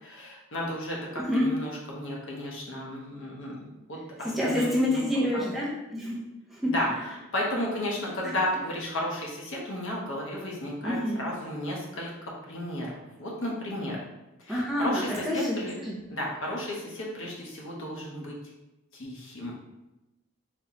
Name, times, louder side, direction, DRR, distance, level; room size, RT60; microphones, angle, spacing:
voice 1, 0.0-5.0 5.3-5.4 6.7-12.1 12.5-14.0 14.4-15.7 16.1-18.3 18.9-19.5, left 1 dB, 60° left, -2 dB, 0.9 m, -33 dB
voice 2, 1.2-1.5 4.2-6.3 6.6-6.7 10.8-11.2 14.5-15.6 15.9-16.0, left 1 dB, ahead, -5 dB, 0.6 m, -27 dB
4.2 x 2.9 x 2.9 m, 0.98 s
head